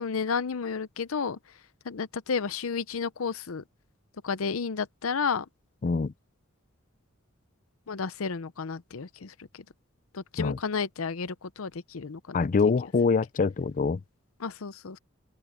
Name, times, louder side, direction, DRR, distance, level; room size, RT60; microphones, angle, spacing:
voice 1, 0.0-1.4 1.8-3.6 4.2-5.5 7.9-9.6 10.1-12.5 14.4-15.0, left 5 dB, 75° left, 0.7 m, -32 dB
voice 2, 5.8-6.1 10.4-10.6 12.3-14.0, left 4 dB, 40° left, 0.4 m, -24 dB
open air
head